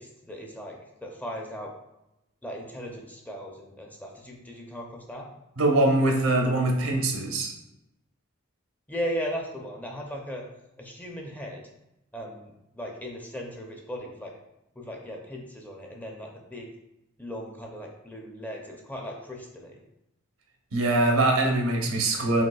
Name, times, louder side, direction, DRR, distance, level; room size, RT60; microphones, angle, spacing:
voice 1, 0.0-1.7 2.4-5.3 8.9-10.4 10.8-11.7 12.1-14.3 14.7-16.7 17.2-19.8, equal, 10° left, 0 dB, 0.5 m, -37 dB
voice 2, 5.6-7.5 20.7-22.4, right 2 dB, 85° right, 1 dB, 0.9 m, -23 dB
5.1 x 3.4 x 2.3 m, 0.90 s
head